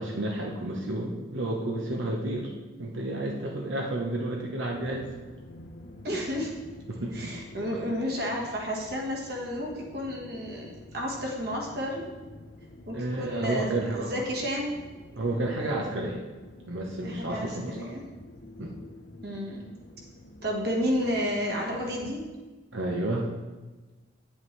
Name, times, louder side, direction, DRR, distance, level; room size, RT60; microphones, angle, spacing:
voice 1, 0.0-2.5 2.8-5.1 6.9-7.3 7.7-7.8 12.9-14.1 15.2-16.3 16.7-17.8 18.6-18.8 22.7-23.3, right 1 dB, 85° right, -1 dB, 1.0 m, -31 dB
sound 1, 4.7-22.2, left 1 dB, 80° left, 0.9 m, -48 dB
voice 2, 6.0-6.5 7.1-12.1 12.9-14.8 17.0-18.0 19.2-19.6 20.4-22.3, equal, 55° right, -1 dB, 1.6 m, -31 dB
9.4 x 8.2 x 3.3 m, 1.2 s
head